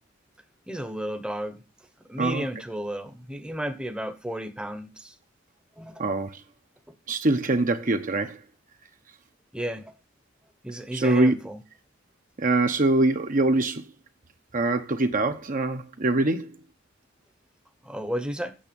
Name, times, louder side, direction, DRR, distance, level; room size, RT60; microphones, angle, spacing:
voice 1, 0.7-1.6 2.1-5.1 5.8-6.0 9.5-10.0 10.6-11.6 17.8-18.6, equal, 5° right, 1.0 m, -33 dB
voice 2, 6.0-6.4 7.1-8.4 10.9-11.3 12.4-13.8 14.5-16.5, right 2 dB, 45° right, 1.0 m, -23 dB
8.9 x 7.6 x 5.3 m
head